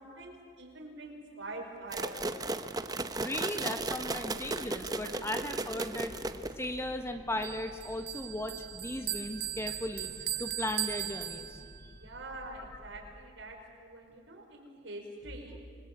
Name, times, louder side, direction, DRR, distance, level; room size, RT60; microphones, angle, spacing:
voice 1, 0.0-2.1 5.3-5.5 11.9-15.6, right 2 dB, 85° right, 1 dB, 5.1 m, -45 dB
sound 1, 1.9-6.8, right 2 dB, 20° right, 0.8 m, -35 dB
voice 2, 3.2-6.2 6.6-11.9, left 1 dB, 15° left, 6 dB, 1.4 m, -37 dB
sound 2, 3.7-13.2, equal, 35° left, 2.2 m, -53 dB
Bell, 7.4-11.9, right 12 dB, 60° right, 1.6 m, -38 dB
27.5 x 20.5 x 8.6 m, 2.1 s
head